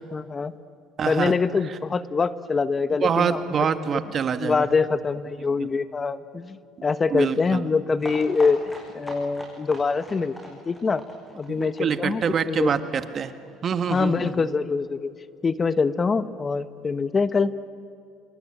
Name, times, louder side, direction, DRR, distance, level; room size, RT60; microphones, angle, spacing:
voice 1, 0.1-0.5 1.1-3.7 4.4-8.6 8.9-11.0 11.3-12.7 13.9-15.1 15.4-17.7, left 4 dB, 30° left, 14 dB, 1.0 m, -24 dB
voice 2, 1.0-1.3 3.0-4.7 5.6-5.7 7.1-7.7 11.5-13.3 13.6-14.5, right 7 dB, 45° right, 10 dB, 1.7 m, -25 dB
sound 1, 8.0-13.5 13.8-13.9 14.1-14.2 14.5-14.6, equal, 5° left, 7.7 m, -41 dB
26.5 x 22.5 x 8.9 m, 2.3 s
supercardioid pair, 75°, 0 cm